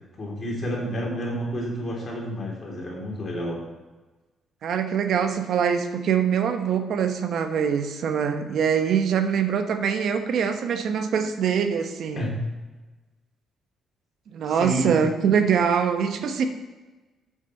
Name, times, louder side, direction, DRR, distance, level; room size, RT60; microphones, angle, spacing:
voice 1, 0.2-3.6 12.2-12.4 14.4-14.9, equal, 40° left, -2 dB, 2.9 m, -30 dB
voice 2, 4.6-12.2 14.3-16.4, right 7 dB, 70° right, 7 dB, 0.9 m, -23 dB
7.4 x 6.7 x 4.3 m, 1.2 s
cardioid pair, 90°, 0 cm